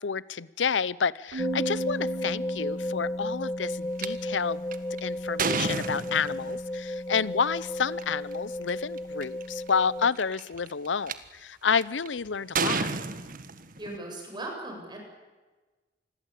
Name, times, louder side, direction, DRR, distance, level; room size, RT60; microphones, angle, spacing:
voice 1, 0.0-4.6 5.0-12.9, left 6 dB, 90° left, 20 dB, 0.7 m, -29 dB
Keyboard (musical), 1.3-3.1, right 5 dB, 70° right, 1.0 m, -37 dB
sound 1, 1.4-10.1, left 1 dB, 15° left, 1.3 m, -33 dB
sound 2, 4.0-4.1 4.7-6.6 7.8-8.0 8.7-8.8 9.0-9.4 10.2-11.1 11.8-12.1 12.6-14.0, right 4 dB, 50° right, 1.6 m, -30 dB
voice 2, 13.8-15.0, right 2 dB, 25° right, 1 dB, 7.7 m, -38 dB
27.5 x 21.5 x 8.5 m, 1.3 s
head